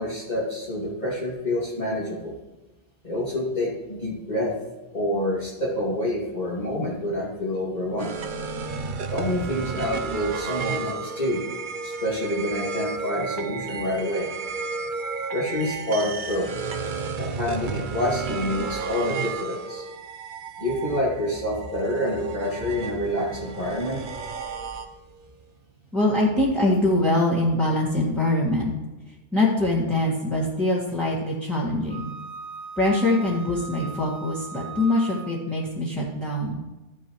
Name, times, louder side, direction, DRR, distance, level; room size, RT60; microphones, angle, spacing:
voice 1, 0.0-2.3 3.0-4.5 4.9-8.1 9.1-11.4 11.8-14.3 15.3-16.5 17.2-19.9 20.6-24.0, left 1 dB, 35° left, -7 dB, 2.5 m, -27 dB
sound 1, 8.0-25.3, right 5 dB, 50° right, 0.8 m, -33 dB
voice 2, 25.9-28.7 29.3-32.1 32.8-36.6, left 1 dB, ahead, -8 dB, 1.8 m, -23 dB
Wind instrument woodwind instrument, 31.9-35.5, right 5 dB, 80° left, 1.9 m, -39 dB
13.5 x 9.7 x 3.1 m, 1.1 s
omnidirectional pair, 1.2 m